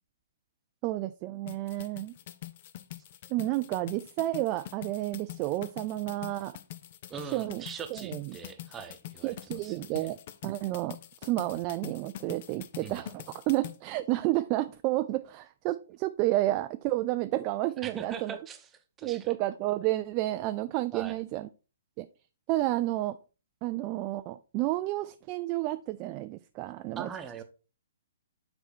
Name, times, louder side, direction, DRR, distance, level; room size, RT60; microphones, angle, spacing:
voice 1, 0.8-2.1 3.3-6.6 7.3-7.6 7.9-8.4 9.2-10.2 10.4-11.0 11.2-18.4 19.0-21.5 22.0-22.1 22.5-23.2 23.6-27.1, right 16 dB, 35° right, 11 dB, 0.3 m, -31 dB
sound 1, 1.5-13.8, left 12 dB, 45° left, 0.6 m, -45 dB
voice 2, 7.1-9.4 9.6-10.1 12.8-13.0 17.8-19.3 20.9-21.2 27.0-27.4, right 6 dB, 15° right, 8 dB, 0.9 m, -41 dB
6.9 x 4.3 x 4.3 m, 0.34 s
figure-of-eight pair, 125°, 0 cm